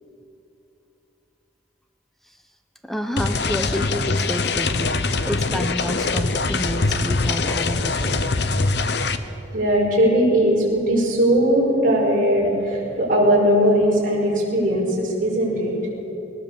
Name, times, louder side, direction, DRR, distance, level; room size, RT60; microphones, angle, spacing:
voice 1, 2.8-8.3, equal, ahead, 6 dB, 0.9 m, -29 dB
sound 1, 3.2-9.2, left 3 dB, 55° left, 0.9 m, -23 dB
voice 2, 9.5-15.8, equal, 45° right, -4 dB, 5.7 m, -19 dB
20.5 x 20.0 x 7.1 m, 2.9 s
head